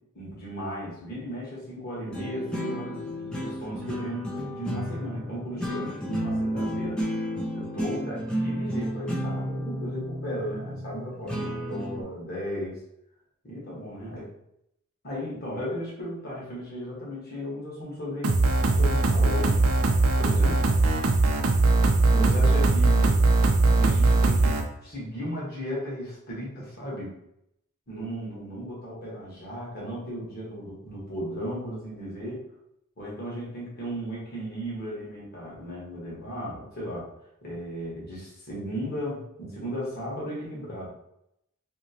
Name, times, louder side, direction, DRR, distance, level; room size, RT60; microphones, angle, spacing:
voice 1, 0.1-7.3 7.5-12.8 13.4-14.3 15.0-18.4 18.8-19.6 20.2-20.7 21.8-27.1 27.9-32.5 33.0-37.1 37.4-40.9, equal, 45° left, -5 dB, 1.3 m, -35 dB
sound 1, 2.1-12.0, equal, 5° left, 0.4 m, -32 dB
sound 2, 18.2-24.6, right 3 dB, 75° right, 0.5 m, -20 dB
2.9 x 2.9 x 2.8 m, 0.79 s
head